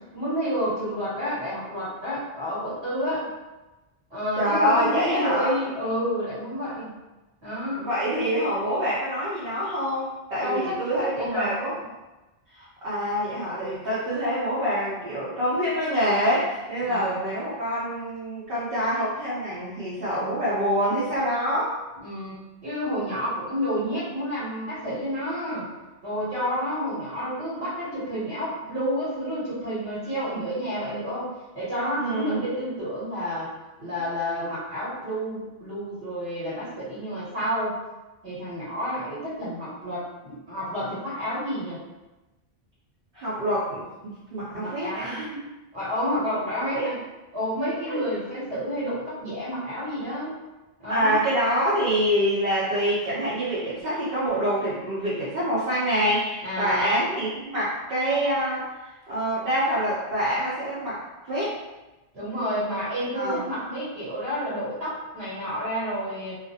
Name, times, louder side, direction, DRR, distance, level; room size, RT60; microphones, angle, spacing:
voice 1, 0.1-3.3 4.1-6.9 7.4-7.9 10.4-10.7 11.2-11.5 16.8-17.2 22.0-22.3 22.6-25.7 26.0-33.5 33.8-37.8 38.2-41.8 44.5-45.2 45.7-47.0 47.3-50.3 50.8-51.2 56.4-56.9 62.1-66.4, equal, 80° right, -10 dB, 1.2 m, -30 dB
voice 2, 4.4-5.5 7.8-11.7 12.5-21.7 32.0-32.4 43.1-45.5 46.3-46.9 47.9-48.0 50.9-58.6 59.1-61.0 61.3-61.5 63.1-63.4, equal, 65° right, -10 dB, 0.9 m, -26 dB
2.4 x 2.0 x 2.6 m, 1.1 s
omnidirectional pair, 1.0 m